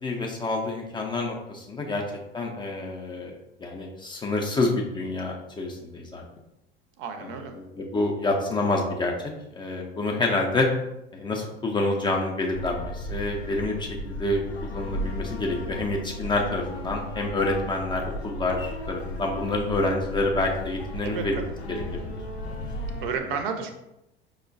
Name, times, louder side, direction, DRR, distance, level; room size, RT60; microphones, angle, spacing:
voice 1, 0.0-2.0 2.3-3.3 3.6-6.2 7.2-7.3 7.6-9.1 9.6-10.7 11.1-21.8, left 2 dB, 15° left, 0 dB, 0.4 m, -28 dB
voice 2, 7.0-7.5 21.0-21.5 23.0-23.7, right 6 dB, 60° right, 6 dB, 0.6 m, -32 dB
sound 1, 12.5-23.1, left 1 dB, 90° left, 0.5 m, -35 dB
4.8 x 2.1 x 2.5 m, 0.90 s
figure-of-eight pair, 75°, 31 cm